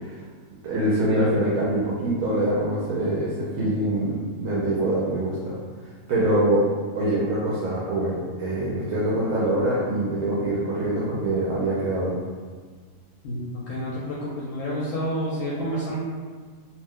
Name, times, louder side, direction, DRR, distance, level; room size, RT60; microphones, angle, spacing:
voice 1, 0.6-5.6 6.1-6.7 6.9-12.1, right 1 dB, 75° right, -7 dB, 1.0 m, -24 dB
voice 2, 13.2-16.0, equal, 70° left, -7 dB, 0.9 m, -29 dB
2.6 x 2.1 x 3.5 m, 1.5 s
omnidirectional pair, 1.5 m